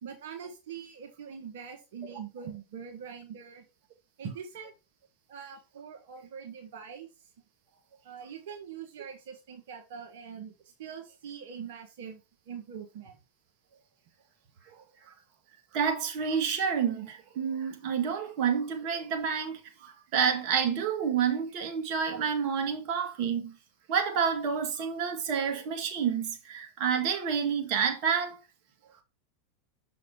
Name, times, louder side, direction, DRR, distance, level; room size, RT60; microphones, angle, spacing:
voice 1, 0.0-3.6 4.2-4.7 5.3-7.1 8.0-10.5 10.8-12.2 12.5-13.1, right 7 dB, 70° right, 1.4 m, -43 dB
voice 2, 15.7-23.5 23.9-28.4, right 7 dB, 55° right, 1.6 m, -29 dB
6.4 x 4.2 x 4.3 m
hypercardioid pair, 95°, 0 cm